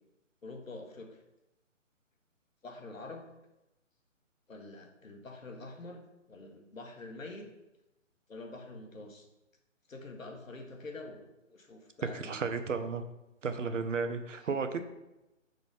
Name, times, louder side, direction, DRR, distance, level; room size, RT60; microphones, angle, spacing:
voice 1, 0.4-1.2 2.6-3.3 4.5-6.0 6.3-7.5 8.3-9.3 9.9-11.2 11.5-12.4 14.4-14.5, left 2 dB, 80° left, 3 dB, 1.4 m, -46 dB
voice 2, 12.1-13.0 13.4-14.8, right 5 dB, 65° right, 8 dB, 0.9 m, -33 dB
5.5 x 4.0 x 5.3 m, 0.95 s
figure-of-eight pair, 155°, 39 cm